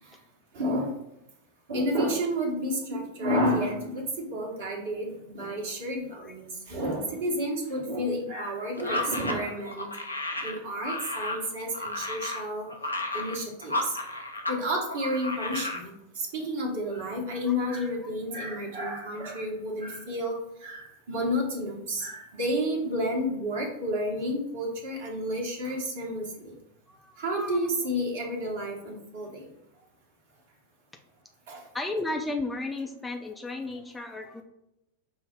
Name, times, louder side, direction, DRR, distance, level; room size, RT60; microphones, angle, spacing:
voice 1, 0.5-1.0 1.7-9.9 10.4-12.7 13.1-13.9 14.5-26.5 27.2-29.5 31.5-31.6, equal, 55° right, 0 dB, 1.2 m, -31 dB
sound 1, 8.8-14.6 14.9-15.8, left 1 dB, 85° left, 0.5 m, -33 dB
voice 2, 26.9-27.7 31.6-34.4, left 2 dB, 10° left, 3 dB, 0.4 m, -34 dB
5.4 x 2.1 x 4.4 m, 0.85 s
figure-of-eight pair, 90°, 0 cm